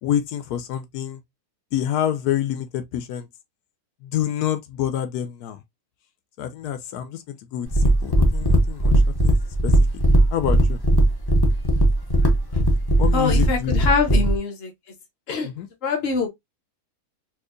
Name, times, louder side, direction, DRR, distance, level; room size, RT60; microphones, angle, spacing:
voice 1, 0.0-1.2 1.7-3.3 4.0-5.6 6.4-8.9 9.2-9.4 9.6-9.7 10.3-10.8 13.0-13.7 14.1-14.2 15.4-15.7, left 10 dB, 85° left, 1.1 m, -27 dB
sound 1, 7.7-14.4, right 1 dB, 25° left, 0.5 m, -18 dB
voice 2, 13.1-14.7 15.3-15.5 15.8-16.3, left 4 dB, 45° left, 1.1 m, -24 dB
4.5 x 2.3 x 2.4 m
omnidirectional pair, 1.6 m